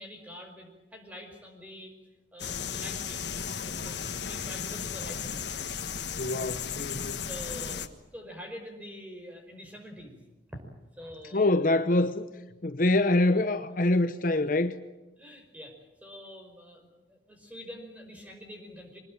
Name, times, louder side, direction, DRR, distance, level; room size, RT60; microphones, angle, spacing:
voice 1, 0.0-2.0 2.3-5.6 7.2-10.2 10.5-10.6 11.0-11.7 15.2-19.0, equal, 10° right, 5.2 m, -45 dB
sound 1, 2.4-7.9, left 7 dB, 75° left, 1.5 m, -35 dB
voice 2, 6.2-7.2 11.3-12.3 12.6-14.7, left 2 dB, 50° left, 0.9 m, -25 dB
24.5 x 20.5 x 9.0 m
head